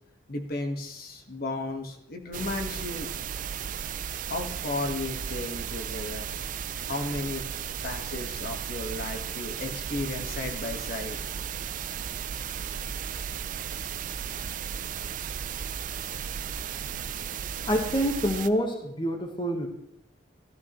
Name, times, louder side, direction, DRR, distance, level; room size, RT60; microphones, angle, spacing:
voice 1, 0.3-3.1 4.3-6.3 6.9-7.5 7.8-12.1, left 2 dB, 55° left, 3 dB, 1.5 m, -34 dB
sound 1, 2.3-18.5, right 8 dB, 45° right, 0.4 m, -35 dB
voice 2, 17.7-19.7, equal, 25° left, 3 dB, 1.3 m, -27 dB
15.0 x 13.0 x 3.1 m, 0.76 s
head